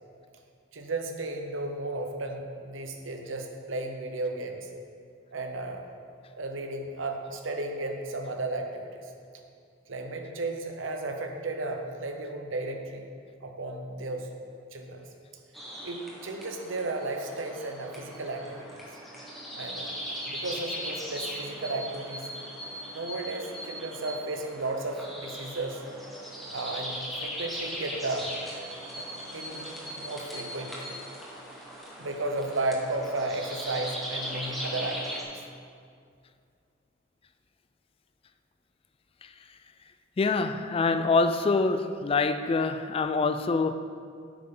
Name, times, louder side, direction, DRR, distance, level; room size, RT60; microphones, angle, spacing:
voice 1, 0.7-4.7 5.3-5.8 6.3-9.1 9.9-13.1 13.4-14.3 14.7-15.1 15.8-18.8 19.6-19.9 20.3-22.3 22.9-25.8 26.5-28.3 29.0-29.1 29.3-29.7 30.0-31.0 32.0-35.4, right 2 dB, 80° right, 4 dB, 1.0 m, -34 dB
sound 1, 15.5-35.2, equal, ahead, 1.5 m, -39 dB
voice 2, 40.2-43.7, left 4 dB, 30° left, 9 dB, 0.3 m, -25 dB
9.8 x 8.4 x 3.9 m, 2.3 s
head